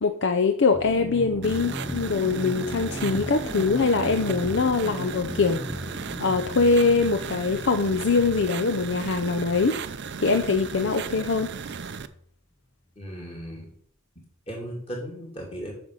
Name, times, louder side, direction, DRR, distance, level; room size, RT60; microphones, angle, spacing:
voice 1, 0.0-5.6 6.2-9.8 10.2-11.5, left 4 dB, 55° left, 8 dB, 0.6 m, -23 dB
sound 1, 0.7-12.2, left 1 dB, 5° left, 0.4 m, -38 dB
sound 2, 1.4-12.1, right 5 dB, 50° right, 0.5 m, -36 dB
voice 2, 13.0-13.7 14.5-15.7, equal, 25° left, -2 dB, 3.0 m, -36 dB
8.5 x 6.2 x 5.6 m, 0.63 s
head